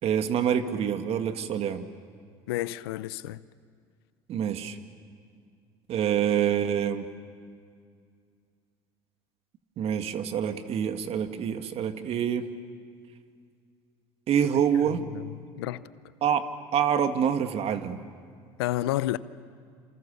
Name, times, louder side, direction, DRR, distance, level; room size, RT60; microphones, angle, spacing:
voice 1, 0.0-1.9 4.3-4.8 5.9-7.1 9.8-12.5 14.3-15.0 16.2-16.5 16.7-18.0, right 8 dB, 55° right, 1.9 m, -26 dB
voice 2, 2.5-3.4 14.9-15.8 18.6-19.2, left 15 dB, 85° left, 0.7 m, -31 dB
28.5 x 27.0 x 6.9 m
hypercardioid pair, 80°, 12 cm